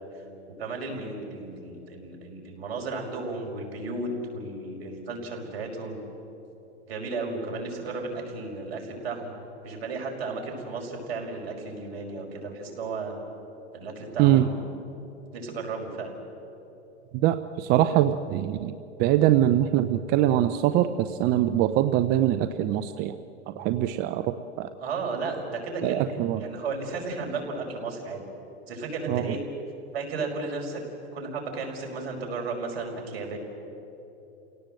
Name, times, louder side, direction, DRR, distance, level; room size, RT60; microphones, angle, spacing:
voice 1, 0.6-6.0 6.9-9.3 9.6-13.2 13.7-14.7 15.3-16.1 24.8-26.1 26.4-28.2 28.7-29.4 29.9-30.8 31.1-33.4, right 3 dB, 65° right, 1 dB, 5.4 m, -34 dB
voice 2, 17.2-18.7 19.0-23.2 23.6-24.7 25.8-26.4 29.1-29.3, right 12 dB, 30° right, 11 dB, 0.6 m, -23 dB
29.5 x 17.5 x 7.7 m, 3.0 s
hypercardioid pair, 130°, 34 cm